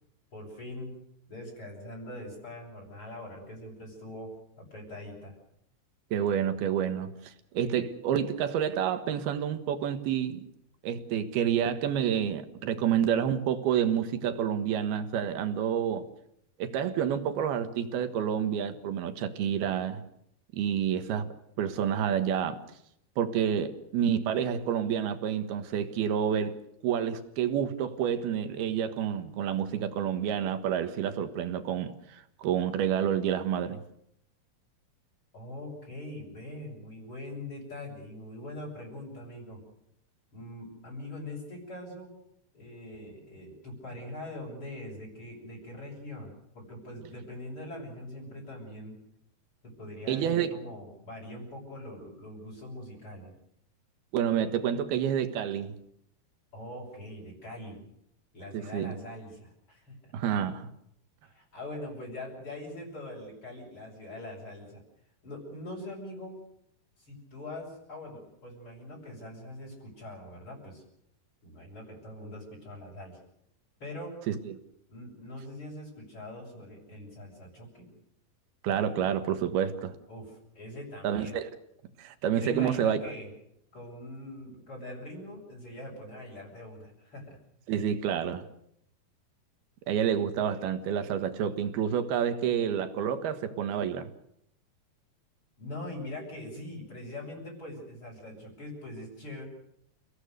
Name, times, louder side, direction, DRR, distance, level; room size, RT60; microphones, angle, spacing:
voice 1, 0.3-0.9 1.3-5.4 35.3-39.6 40.3-42.1 42.5-49.0 49.6-53.3 56.5-57.8 58.3-60.1 61.2-64.8 65.2-66.4 67.0-70.8 71.4-73.2 73.8-74.2 74.9-77.9 80.1-81.4 82.3-83.3 83.7-87.4 95.6-99.4, left 1 dB, 30° left, 7.4 m, -42 dB
voice 2, 6.1-10.4 10.8-16.0 16.6-20.0 20.5-21.3 21.6-22.6 23.2-26.6 26.8-33.8 50.1-50.5 54.1-55.7 58.5-58.9 60.1-60.7 74.3-74.6 78.6-79.9 81.0-81.5 82.0-83.1 87.7-88.5 89.9-94.1, right 9 dB, 75° right, 3.4 m, -29 dB
30.0 x 17.0 x 6.7 m
omnidirectional pair, 4.6 m